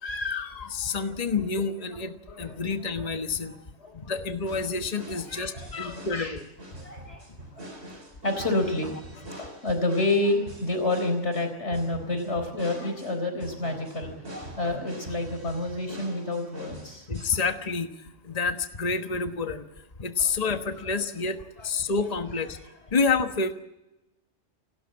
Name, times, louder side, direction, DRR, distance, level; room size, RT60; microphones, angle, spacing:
voice 1, 0.0-3.5 3.9-6.5 17.1-17.9 18.2-19.6 20.0-22.6 22.9-23.5, left 4 dB, 35° left, 7 dB, 1.3 m, -28 dB
voice 2, 3.5-4.1 5.1-6.4 6.8-7.2 7.5-7.8 8.2-9.0 9.2-17.1 20.2-20.3, left 2 dB, 70° left, 7 dB, 4.5 m, -29 dB
sound 1, 4.5-17.5, right 1 dB, 60° right, 4.3 m, -44 dB
29.0 x 13.0 x 8.7 m, 0.97 s
omnidirectional pair, 1.2 m